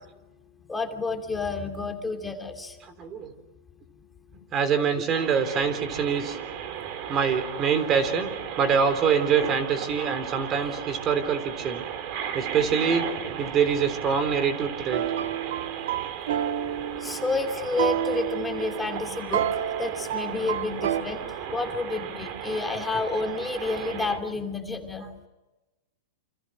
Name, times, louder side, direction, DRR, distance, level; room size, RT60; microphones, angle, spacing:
voice 1, 0.7-2.8 17.0-19.4 19.8-25.1, left 3 dB, 10° left, 3 dB, 2.8 m, -30 dB
voice 2, 3.0-3.3 4.5-6.4 7.1-8.3 8.6-11.8 12.3-13.1 13.4-15.0, right 6 dB, 30° right, 10 dB, 3.7 m, -24 dB
sound 1, 5.1-24.2, right 9 dB, 45° right, 3.3 m, -36 dB
sound 2, 14.9-21.0, right 10 dB, 70° right, 1.3 m, -30 dB
28.5 x 26.5 x 6.3 m, 1.1 s
hypercardioid pair, 140°, 0 cm